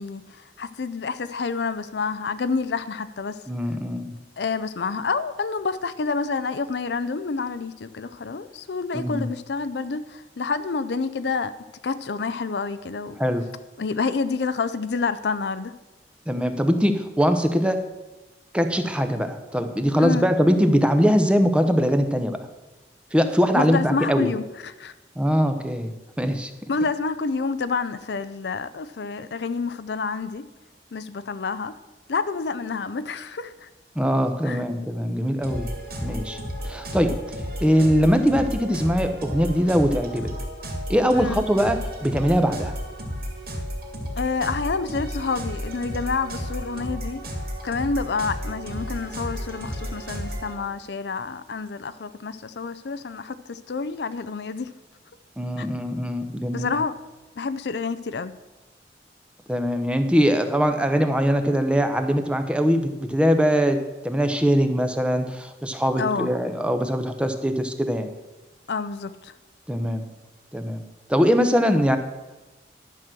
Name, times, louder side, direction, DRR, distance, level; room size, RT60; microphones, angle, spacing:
voice 1, 0.0-3.4 4.4-11.5 11.8-13.2 13.8-15.7 20.0-20.2 23.5-24.9 26.7-30.5 30.9-31.7 32.1-33.7 34.4-34.6 41.1-41.4 44.2-47.2 47.6-54.7 55.6-55.7 56.5-56.9 57.4-58.4 66.0-66.3 68.7-69.3, left 4 dB, 70° left, 0.5 m, -28 dB
voice 2, 3.5-4.1 8.9-9.3 13.2-13.5 16.3-17.8 18.5-22.4 23.1-24.3 25.2-26.7 33.9-35.7 36.0-37.3 37.6-40.3 40.9-42.7 55.4-56.8 59.5-68.1 69.7-70.0 70.5-70.8 71.1-72.0, equal, 5° right, 0.8 m, -22 dB
sound 1, 35.4-50.5, equal, 55° right, 2.5 m, -33 dB
11.5 x 6.1 x 7.6 m
head